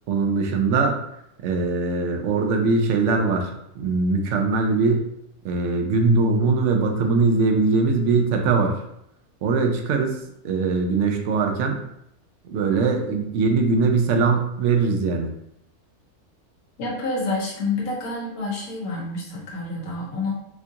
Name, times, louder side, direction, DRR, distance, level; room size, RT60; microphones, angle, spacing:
voice 1, 0.1-1.0 1.4-5.0 5.4-8.8 9.4-10.2 10.4-11.8 12.4-15.3, right 4 dB, 65° right, 3 dB, 0.8 m, -21 dB
voice 2, 16.8-20.3, left 3 dB, 75° left, -3 dB, 1.4 m, -28 dB
4.3 x 2.4 x 2.7 m, 0.76 s
omnidirectional pair, 1.6 m